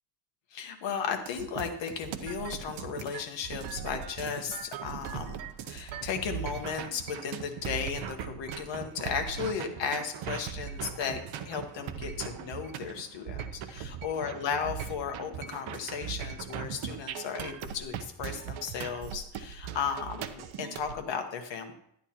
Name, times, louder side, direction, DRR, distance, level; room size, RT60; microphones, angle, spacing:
voice 1, 0.5-5.4 5.6-21.7, left 6 dB, 70° left, 5 dB, 1.3 m, -35 dB
sound 1, 1.3-20.9, right 8 dB, 85° right, 0.9 m, -39 dB
11.0 x 10.5 x 2.9 m, 0.72 s
cardioid pair, 175°, 45 cm